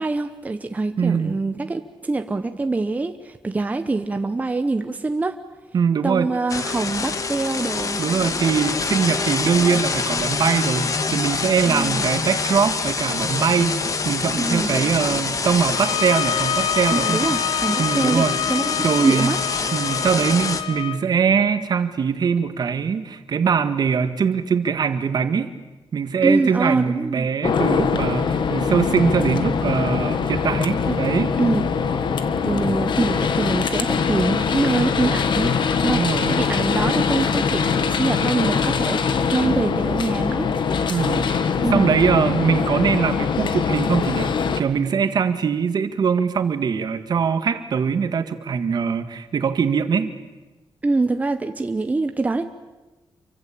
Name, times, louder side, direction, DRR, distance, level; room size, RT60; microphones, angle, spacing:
voice 1, 0.0-5.4 6.0-8.0 11.7-12.0 14.4-14.8 16.9-19.4 26.2-27.3 30.8-31.0 31.4-31.7 32.4-35.6 35.8-40.5 41.6-42.0 50.8-52.4, right 3 dB, 20° right, 7 dB, 1.0 m, -24 dB
voice 2, 1.0-1.4 5.7-6.3 8.0-17.4 17.8-18.4 18.8-19.4 19.7-25.5 25.9-31.3 35.8-36.4 40.9-50.1, right 6 dB, 55° right, 10 dB, 1.8 m, -22 dB
sound 1, 6.5-20.6, left 4 dB, 40° left, 1.8 m, -25 dB
sound 2, 15.7-21.0, left 10 dB, 90° left, 1.0 m, -27 dB
sound 3, 27.4-44.6, left 6 dB, 65° left, 1.8 m, -22 dB
28.0 x 24.5 x 8.6 m, 1.2 s
wide cardioid pair, 180°, 9 cm